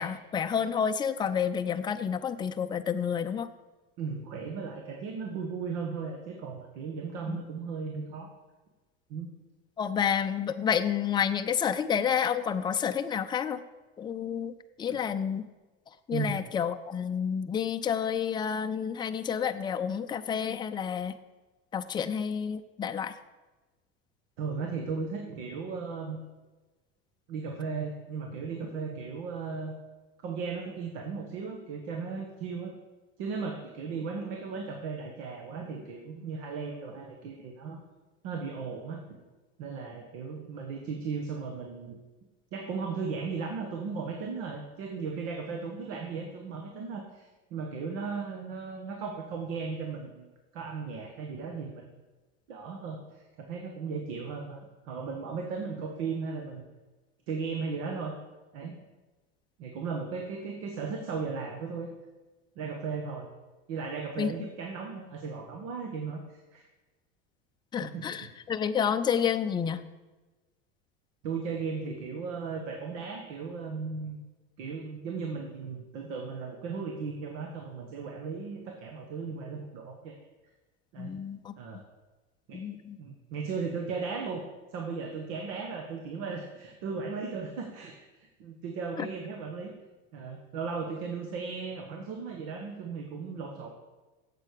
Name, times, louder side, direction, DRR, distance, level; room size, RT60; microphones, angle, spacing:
voice 1, 0.0-3.5 7.3-7.4 9.8-13.6 14.0-15.4 16.1-21.1 21.7-23.1 64.2-64.3 67.7-69.8 81.0-81.5 82.5-83.0 89.0-89.1, left 7 dB, 15° left, 7 dB, 0.5 m, -30 dB
voice 2, 4.0-8.3 9.1-9.3 14.9-15.0 16.1-16.4 24.4-26.2 27.3-29.7 30.2-32.7 33.2-37.8 38.2-39.0 39.6-42.0 42.5-50.3 50.5-51.9 52.5-56.6 57.3-58.1 58.5-58.8 59.6-61.9 62.5-63.3 63.7-66.6 67.8-68.4 71.2-74.2 74.6-80.1 80.9-81.2 81.6-81.8 82.5-82.6 83.0-84.4 84.7-89.7 90.1-93.7, right 5 dB, 70° right, 3 dB, 1.5 m, -36 dB
8.1 x 7.6 x 6.7 m, 1.2 s
supercardioid pair, 125°, 30 cm